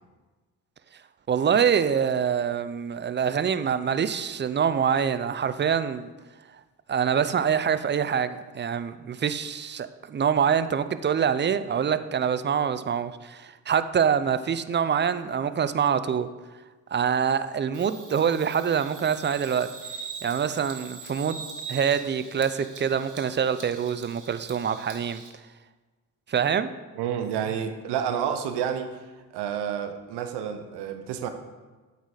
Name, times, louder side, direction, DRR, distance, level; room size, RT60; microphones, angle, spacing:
voice 1, 1.3-6.1 6.9-16.3 16.9-19.7 20.2-25.2 26.3-26.7, right 7 dB, 30° right, 13 dB, 0.4 m, -25 dB
Bird vocalization bird call bird song, 17.7-25.3, right 5 dB, 50° right, 1.2 m, -42 dB
voice 2, 27.0-29.0 29.3-31.3, right 8 dB, 80° right, 8 dB, 0.7 m, -29 dB
8.0 x 4.1 x 4.8 m, 1.3 s
hypercardioid pair, 45°, 40 cm